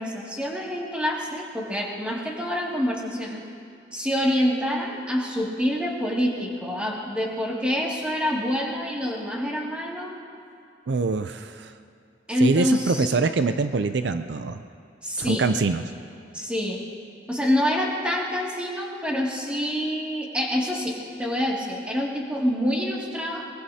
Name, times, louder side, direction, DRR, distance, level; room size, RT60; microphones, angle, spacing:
voice 1, 0.0-3.4 3.9-10.2 12.3-13.2 15.0-15.5 16.3-16.8 17.3-23.4, equal, 5° right, -4 dB, 2.3 m, -26 dB
voice 2, 10.9-11.7 12.4-14.6 15.2-15.8, right 4 dB, 70° right, 9 dB, 0.5 m, -24 dB
22.5 x 21.5 x 2.8 m, 2.4 s
head